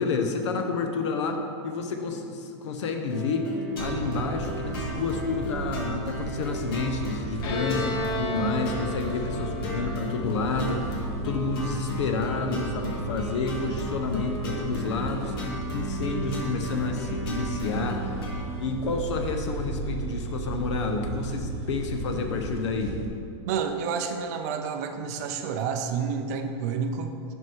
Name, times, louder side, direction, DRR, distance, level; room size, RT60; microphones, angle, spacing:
voice 1, 0.0-3.5 3.8-15.3 15.7-18.0 18.6-23.0, left 4 dB, 75° left, 5 dB, 0.8 m, -29 dB
sound 1, 3.1-18.5, left 1 dB, 50° left, 1.2 m, -36 dB
sound 2, 3.8-23.1, right 3 dB, 60° right, 1.1 m, -35 dB
Bowed string instrument, 7.4-11.0, left 1 dB, 25° left, 0.6 m, -34 dB
voice 2, 23.5-27.1, right 6 dB, 35° right, 6 dB, 0.5 m, -29 dB
6.3 x 5.4 x 4.5 m, 2.5 s
supercardioid pair, 180°, 15 cm